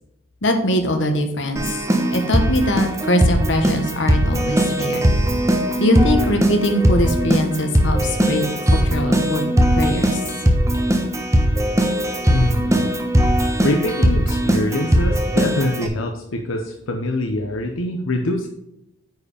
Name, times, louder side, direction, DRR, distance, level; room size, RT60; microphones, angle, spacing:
voice 1, 0.4-1.8 2.1-5.0 5.8-10.2, equal, 60° left, 6 dB, 1.3 m, -22 dB
Keyboard (musical), 1.6-15.9, equal, 15° right, 1.0 m, -19 dB
voice 2, 12.3-12.9 13.6-18.5, left 1 dB, 80° left, 3 dB, 0.8 m, -24 dB
9.4 x 4.9 x 5.1 m, 0.84 s
head